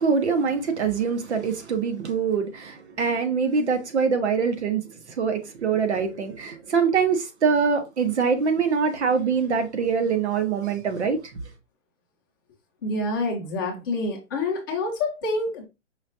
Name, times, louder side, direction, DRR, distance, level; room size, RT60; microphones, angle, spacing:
voice 1, 0.0-11.2, right 5 dB, 60° right, 1.0 m, -24 dB
voice 2, 12.8-15.7, left 2 dB, 15° left, 0.7 m, -27 dB
5.0 x 2.5 x 2.7 m
hypercardioid pair, 165°, 39 cm